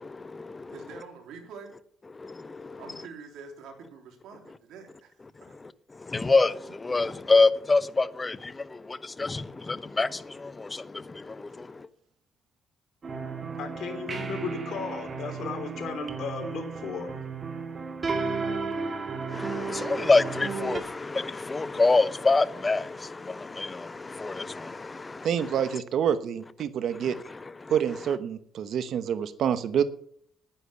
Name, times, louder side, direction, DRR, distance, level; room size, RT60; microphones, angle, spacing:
voice 1, 0.0-0.9 2.1-3.0 5.4-11.9 19.3-25.8 27.0-27.7, left 3 dB, 25° left, 0.8 m, -27 dB
voice 2, 0.7-1.7 2.8-5.1 5.4-5.5, right 5 dB, 85° right, 3.2 m, -45 dB
sound 1, 13.0-20.8, right 4 dB, 40° right, 2.3 m, -34 dB
voice 3, 13.6-17.2, left 5 dB, 70° left, 3.2 m, -35 dB
voice 4, 25.2-27.2 27.7-29.8, right 8 dB, 70° right, 1.0 m, -27 dB
10.5 x 9.9 x 6.9 m
cardioid pair, 90°, 0 cm